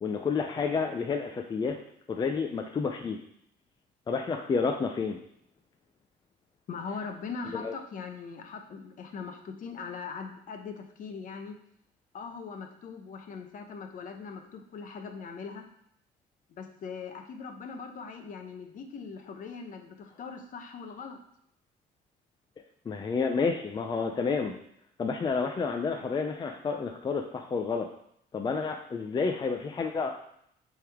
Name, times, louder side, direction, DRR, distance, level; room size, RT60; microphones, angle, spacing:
voice 1, 0.0-1.8 2.1-3.2 4.1-5.2 7.5-7.7 22.9-24.5 25.0-27.9 28.3-30.1, left 5 dB, 25° left, 4 dB, 0.4 m, -30 dB
voice 2, 6.7-11.6 12.1-15.6 16.6-21.2, left 5 dB, 50° left, 5 dB, 0.9 m, -40 dB
7.5 x 3.5 x 3.5 m, 0.72 s
cardioid pair, 110°, 17 cm